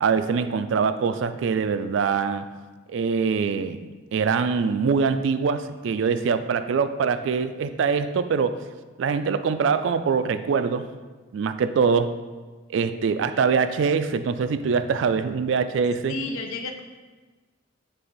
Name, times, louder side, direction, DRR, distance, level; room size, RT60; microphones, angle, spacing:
voice 1, 0.0-2.5 2.9-3.8 4.1-8.6 9.0-10.8 11.3-12.1 12.7-16.2, right 5 dB, 60° right, 11 dB, 0.3 m, -23 dB
voice 2, 16.1-16.8, left 3 dB, 85° left, 5 dB, 0.6 m, -31 dB
7.6 x 3.4 x 4.0 m, 1.3 s
head